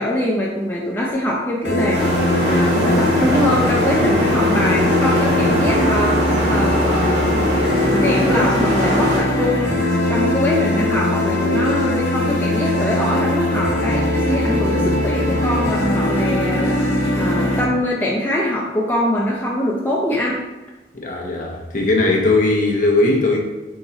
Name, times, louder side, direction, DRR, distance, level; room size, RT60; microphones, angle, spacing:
voice 1, 0.0-2.0 2.4-6.2 6.5-7.5 7.9-9.7 10.1-16.8 17.2-20.4, left 1 dB, 10° left, -4 dB, 0.4 m, -22 dB
sound 1, 1.6-17.7, left 1 dB, 70° left, 0.9 m, -20 dB
sound 2, 1.9-9.2, equal, 65° right, 1.0 m, -22 dB
voice 2, 21.0-23.4, left 2 dB, 45° left, -1 dB, 0.7 m, -18 dB
3.8 x 2.9 x 3.9 m, 1.2 s
head